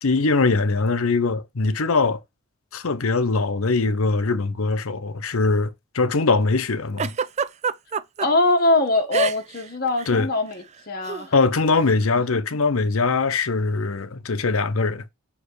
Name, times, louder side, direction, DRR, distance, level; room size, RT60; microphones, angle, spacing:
voice 1, 0.0-2.2 2.7-7.1 10.1-10.3 11.3-15.0, left 3 dB, 85° left, 0.8 m, -22 dB
Giggle, 7.0-8.3 9.1-9.6 9.9-10.1 11.0-11.3, right 6 dB, 30° right, 0.4 m, -25 dB
voice 2, 8.2-11.3 12.3-12.4, left 2 dB, 45° left, 1.7 m, -22 dB
5.6 x 4.9 x 4.8 m
head